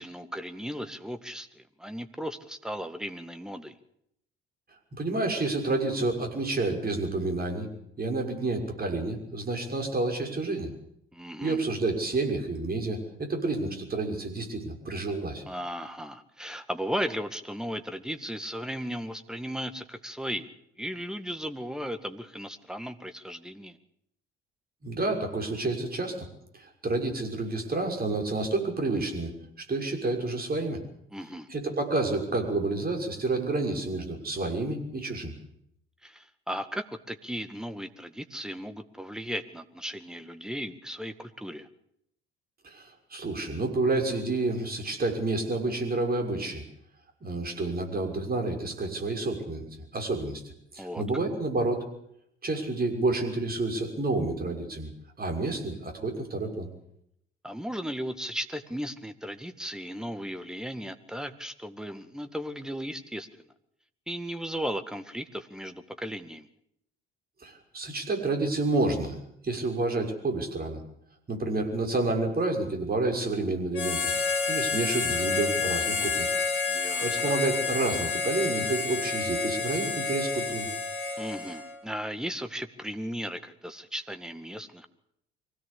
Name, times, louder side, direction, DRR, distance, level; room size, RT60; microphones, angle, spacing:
voice 1, 0.0-3.7 11.1-11.6 15.5-20.5 20.8-23.8 31.1-31.5 36.0-41.7 50.8-51.0 57.4-63.3 64.1-66.5 76.7-77.3 81.2-84.9, equal, ahead, 9 dB, 2.0 m, -36 dB
voice 2, 5.0-7.7 8.0-10.7 11.4-15.4 24.8-26.3 26.5-29.3 29.6-30.8 31.5-35.3 42.6-46.6 47.2-49.6 49.9-50.4 50.7-51.9 52.4-54.9 55.2-56.7 67.4-69.2 69.4-70.8 71.3-74.1 74.5-76.3 77.0-80.7, right 2 dB, 30° right, 4 dB, 6.2 m, -29 dB
Harmonica, 73.7-81.8, left 4 dB, 50° left, 3.9 m, -29 dB
23.5 x 17.5 x 8.6 m, 0.75 s
figure-of-eight pair, 50°, 29 cm